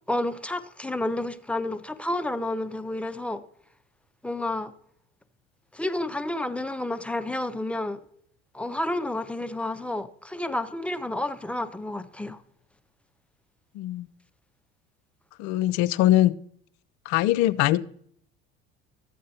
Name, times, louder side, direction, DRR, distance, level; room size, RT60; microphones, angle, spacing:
voice 1, 0.1-3.4 4.2-4.7 5.7-8.0 8.5-12.4, left 1 dB, 5° left, 0.5 m, -30 dB
voice 2, 13.7-14.1 15.4-16.3 17.1-17.8, left 14 dB, 55° left, 0.5 m, -22 dB
12.5 x 8.4 x 2.8 m
hypercardioid pair, 70°, 34 cm